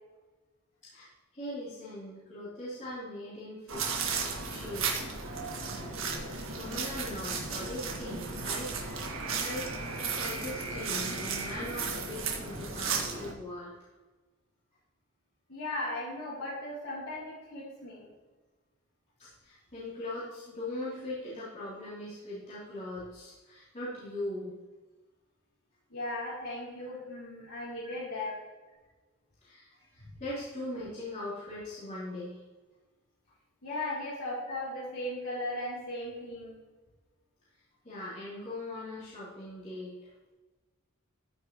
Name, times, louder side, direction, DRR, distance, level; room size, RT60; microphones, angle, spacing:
voice 1, 0.8-5.1 6.2-9.7 10.0-13.7 19.2-24.6 29.4-32.4 37.8-40.0, left 1 dB, 35° left, -11 dB, 3.3 m, -40 dB
sound 1, 3.7-13.3, right 4 dB, 70° right, 1.7 m, -34 dB
voice 2, 15.5-18.1 25.9-28.3 33.6-36.6, left 1 dB, 80° left, -9 dB, 3.1 m, -37 dB
14.0 x 6.7 x 3.1 m, 1.2 s
head